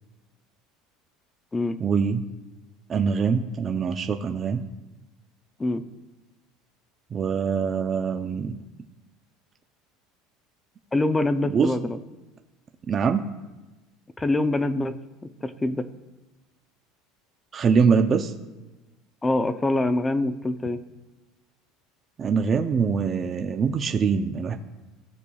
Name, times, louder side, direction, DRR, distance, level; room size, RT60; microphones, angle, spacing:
voice 1, 1.8-2.3 2.9-4.6 7.1-8.6 11.5-11.7 12.9-13.3 17.5-18.3 22.2-24.6, right 6 dB, 30° right, 5 dB, 0.6 m, -23 dB
voice 2, 10.9-12.0 14.2-14.9 15.4-15.9 19.2-20.8, left 2 dB, 15° left, 11 dB, 0.6 m, -24 dB
16.5 x 6.7 x 2.4 m, 1.1 s
supercardioid pair, 125°, 0 cm